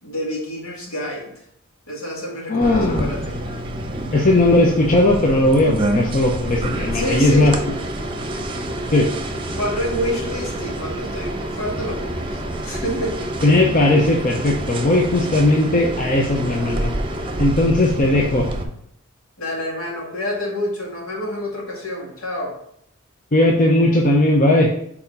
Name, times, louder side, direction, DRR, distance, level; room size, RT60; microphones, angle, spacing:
voice 1, 0.0-1.4 1.9-3.4 6.9-7.6 9.6-13.3 19.4-22.6, equal, 75° left, -2 dB, 2.1 m, -28 dB
voice 2, 2.5-3.1 4.1-7.5 8.9-9.1 13.4-16.9 17.4-18.5 23.3-24.7, left 1 dB, 40° left, 0 dB, 0.8 m, -17 dB
sound 1, 2.6-18.6, right 1 dB, 25° right, 0.8 m, -27 dB
4.9 x 4.3 x 5.3 m, 0.70 s
head